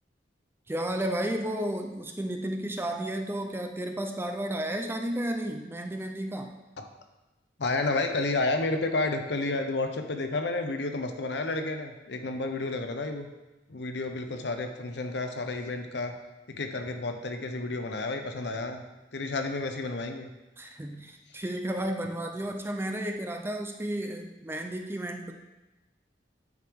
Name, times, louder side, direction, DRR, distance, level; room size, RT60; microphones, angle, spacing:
voice 1, 0.7-6.6 20.6-25.3, right 1 dB, 15° right, 4 dB, 0.5 m, -32 dB
voice 2, 7.6-13.3 13.7-16.2 16.5-18.8 19.1-20.3, left 2 dB, 70° left, 6 dB, 0.8 m, -31 dB
9.3 x 4.7 x 3.6 m, 1.0 s
head